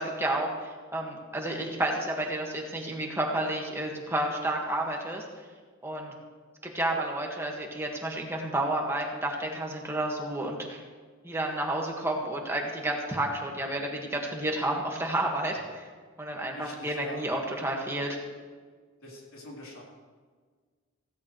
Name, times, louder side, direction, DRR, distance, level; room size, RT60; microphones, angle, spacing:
voice 1, 0.0-5.2 5.8-6.1 6.6-10.8 11.2-15.9 16.2-18.2, right 1 dB, 10° right, 0 dB, 1.8 m, -31 dB
voice 2, 16.5-17.2 19.0-19.8, left 1 dB, 80° left, -3 dB, 3.9 m, -44 dB
16.5 x 15.5 x 3.3 m, 1.5 s
head